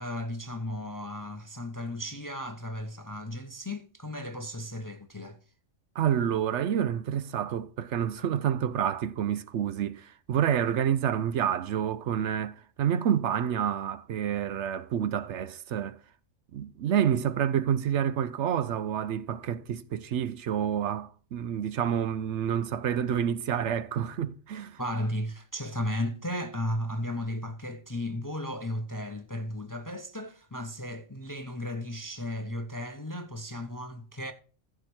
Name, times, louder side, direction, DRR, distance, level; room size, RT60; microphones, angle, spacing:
voice 1, 0.0-5.4 24.8-34.3, left 1 dB, 20° left, 0.6 m, -35 dB
voice 2, 6.0-16.0 16.5-24.8, right 9 dB, 70° right, 0.9 m, -28 dB
14.5 x 5.0 x 4.4 m
omnidirectional pair, 1.3 m